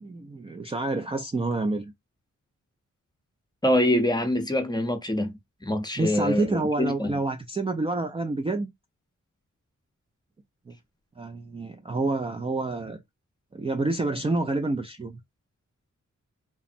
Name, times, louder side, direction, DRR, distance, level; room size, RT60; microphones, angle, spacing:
voice 1, 0.0-1.9 6.0-8.7 10.7-10.8 11.2-13.0 13.5-15.2, right 3 dB, 20° right, 0.3 m, -28 dB
voice 2, 3.6-7.1, left 1 dB, 15° left, 0.7 m, -25 dB
3.4 x 2.0 x 2.5 m
wide cardioid pair, 95°, 31 cm